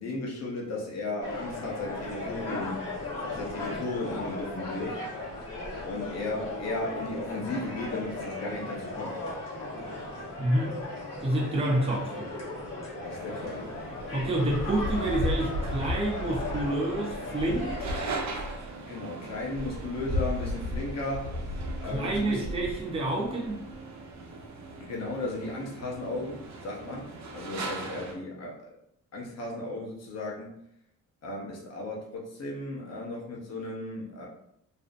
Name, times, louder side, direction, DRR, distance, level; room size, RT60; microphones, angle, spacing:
voice 1, 0.0-2.9 3.3-5.0 5.8-9.2 13.0-13.6 18.9-21.3 21.8-22.4 24.8-28.6 29.1-30.5 31.2-34.3, left 2 dB, 55° left, -2 dB, 0.9 m, -35 dB
sound 1, 1.2-18.1, left 2 dB, 80° left, 1.0 m, -37 dB
voice 2, 10.4-10.8 11.2-12.3 14.1-17.9 21.8-23.6, right 1 dB, 20° right, -3 dB, 0.7 m, -28 dB
sound 2, 13.1-28.1, equal, 60° right, 0.6 m, -36 dB
2.6 x 2.0 x 2.5 m, 0.73 s
cardioid pair, 90°, 32 cm